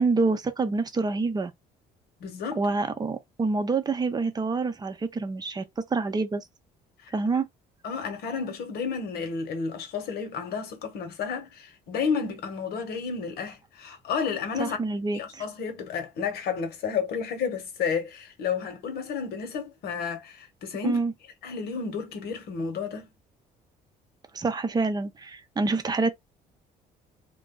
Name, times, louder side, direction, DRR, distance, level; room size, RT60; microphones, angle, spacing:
voice 1, 0.0-1.5 2.6-5.6 5.9-6.4 7.1-7.5 14.6-15.4 20.8-21.1 24.3-26.1, right 3 dB, 25° right, 0.6 m, -27 dB
voice 2, 2.2-2.6 7.0-7.1 7.8-14.8 15.1-21.0 21.4-23.1, left 6 dB, 70° left, 1.1 m, -31 dB
2.5 x 2.3 x 3.7 m
cardioid pair, 110°, 17 cm